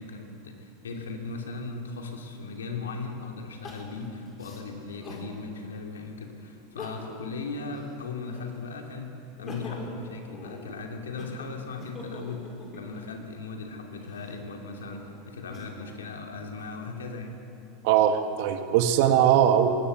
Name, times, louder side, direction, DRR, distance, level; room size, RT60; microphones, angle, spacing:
voice 1, 0.0-9.1 9.4-17.3, left 3 dB, 90° left, 3 dB, 2.8 m, -38 dB
Crying sobbing, 3.6-5.3 5.8-5.9 6.6-7.3 7.7-8.7 9.2-13.2 13.9-16.0 16.5-17.3, left 3 dB, 35° left, 4.9 m, -44 dB
voice 2, 17.8-19.7, right 10 dB, 65° right, 7 dB, 1.7 m, -21 dB
20.0 x 17.5 x 7.9 m, 2.7 s
hypercardioid pair, 100°, 0 cm